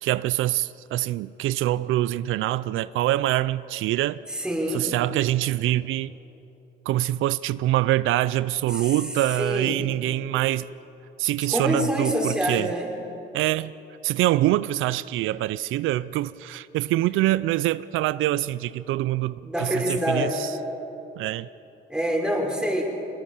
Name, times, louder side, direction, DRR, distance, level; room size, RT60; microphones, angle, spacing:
voice 1, 0.0-4.2 4.7-6.1 6.9-10.7 11.2-12.7 13.3-13.7 14.0-20.5 21.2-21.5, right 15 dB, 85° right, 0.5 m, -25 dB
voice 2, 4.3-4.9 8.7-8.9 9.3-9.8 11.5-12.9 19.4-20.4 21.9-22.8, equal, 5° right, 5.2 m, -26 dB
23.5 x 21.0 x 7.2 m
cardioid pair, 90°, 20 cm